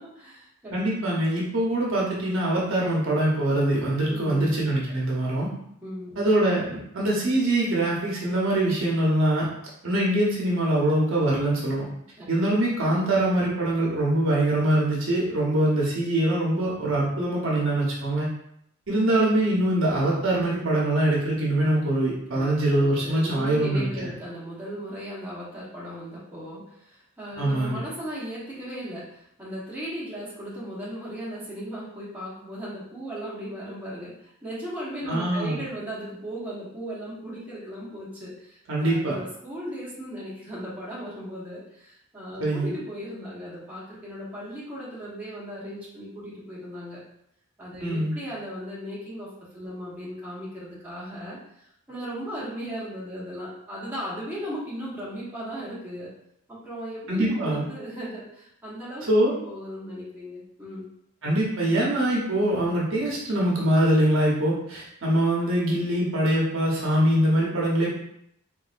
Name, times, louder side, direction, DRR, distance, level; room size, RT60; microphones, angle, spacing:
voice 1, 0.0-0.8 4.1-4.5 5.8-6.3 12.2-12.3 22.3-47.0 47.6-56.1 56.5-59.1 59.4-60.9, equal, 10° right, -9 dB, 1.1 m, -37 dB
voice 2, 0.7-5.5 6.2-9.5 9.8-11.8 12.3-18.3 18.9-24.1 27.4-27.8 35.1-35.6 38.7-39.2 42.4-42.7 47.8-48.1 57.1-57.6 59.0-59.3 61.2-67.9, right 1 dB, 65° right, -4 dB, 0.9 m, -23 dB
3.8 x 2.6 x 2.5 m, 0.74 s
head